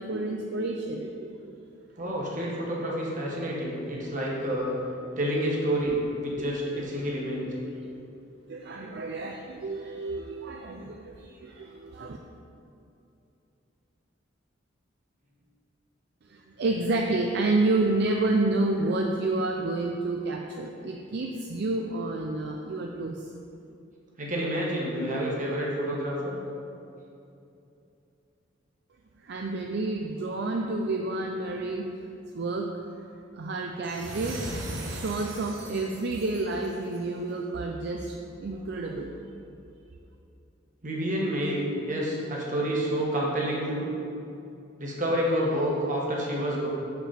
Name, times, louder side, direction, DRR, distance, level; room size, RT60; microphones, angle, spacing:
voice 1, 0.0-1.5 6.4-6.5 6.7-6.8 7.4-7.5 8.5-12.2 16.6-23.2 29.3-31.9 32.3-32.7 33.4-34.4 34.9-39.1, right 2 dB, 60° right, 2 dB, 0.4 m, -29 dB
voice 2, 2.0-4.7 5.2-7.4 24.2-26.3 40.8-41.6 41.9-43.9 44.8-46.7, equal, 45° right, -3 dB, 1.5 m, -28 dB
sound 1, 33.8-37.1, right 1 dB, 85° right, 1.1 m, -38 dB
6.9 x 6.0 x 4.2 m, 2.7 s
head